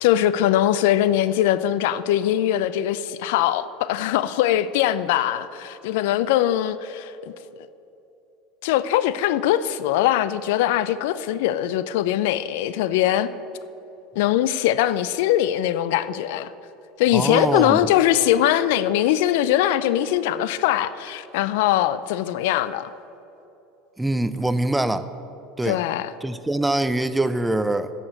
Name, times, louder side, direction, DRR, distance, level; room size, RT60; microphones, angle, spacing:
voice 1, 0.0-7.3 8.6-13.3 14.2-16.5 17.0-22.9 25.6-26.1, left 12 dB, 75° left, 0.4 m, -21 dB
voice 2, 17.1-17.8 24.0-25.1 25.6-25.8 26.2-27.9, right 1 dB, 10° right, 0.5 m, -23 dB
8.7 x 6.5 x 7.8 m
supercardioid pair, 95°, 0 cm